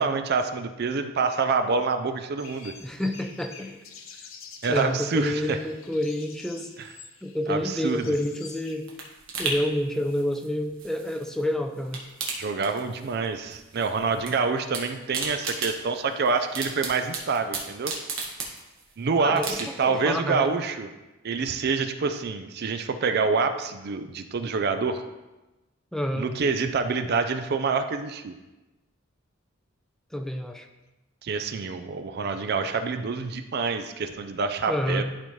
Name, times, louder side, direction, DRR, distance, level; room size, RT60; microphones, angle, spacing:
voice 1, 0.0-2.7 4.6-5.6 6.8-6.9 7.5-8.1 12.4-17.9 19.0-20.9 21.2-25.0 26.2-28.4 31.2-35.0, right 4 dB, 55° right, 8 dB, 0.4 m, -27 dB
sound 1, 2.4-8.8, left 5 dB, 80° left, 0.9 m, -47 dB
voice 2, 2.8-3.8 4.7-6.7 7.2-8.9 9.4-12.0 19.2-20.5 25.9-26.3 30.1-30.7 34.7-35.0, left 1 dB, 5° left, 5 dB, 0.5 m, -28 dB
sound 2, 8.2-11.4 11.7-13.3 13.5-14.3 14.6-18.9 19.4-20.0 20.4-20.5, right 4 dB, 90° right, 1.4 m, -35 dB
12.0 x 4.2 x 3.1 m, 1.1 s
head